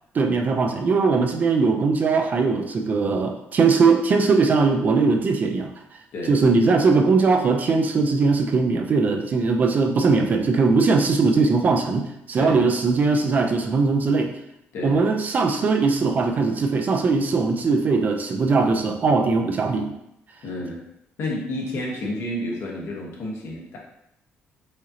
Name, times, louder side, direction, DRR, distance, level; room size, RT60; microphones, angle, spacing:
voice 1, 0.2-5.7 6.3-14.3 14.8-19.9, right 4 dB, 35° right, 4 dB, 0.4 m, -20 dB
voice 2, 20.4-20.9 21.2-23.8, left 1 dB, 65° left, -2 dB, 1.1 m, -30 dB
4.8 x 2.7 x 2.7 m, 0.80 s
cardioid pair, 135°, 5 cm